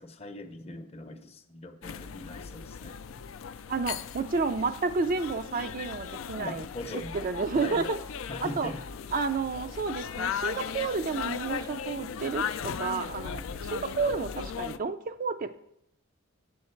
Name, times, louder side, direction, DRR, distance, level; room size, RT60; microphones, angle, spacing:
voice 1, 0.0-3.0 6.4-7.2 7.5-7.9 8.3-8.9, left 2 dB, 30° left, 8 dB, 0.6 m, -41 dB
sound 1, 1.8-14.8, left 7 dB, 75° left, 0.4 m, -37 dB
voice 2, 3.7-6.6 7.1-8.0 8.4-8.7 9.1-15.6, right 4 dB, 40° right, 10 dB, 0.4 m, -31 dB
7.7 x 7.1 x 4.4 m, 0.76 s
head